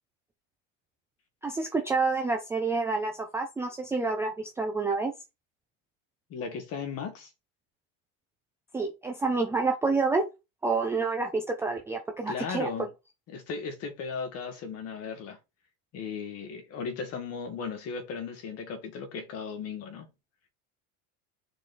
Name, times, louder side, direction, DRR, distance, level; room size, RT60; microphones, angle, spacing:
voice 1, 1.4-5.1 8.7-10.3 10.6-12.7, right 3 dB, 5° right, 0.5 m, -28 dB
voice 2, 6.3-7.3 12.3-12.9 13.3-15.4 15.9-20.1, left 5 dB, 35° left, 2.0 m, -36 dB
6.4 x 4.2 x 3.9 m
supercardioid pair, 165°, 41 cm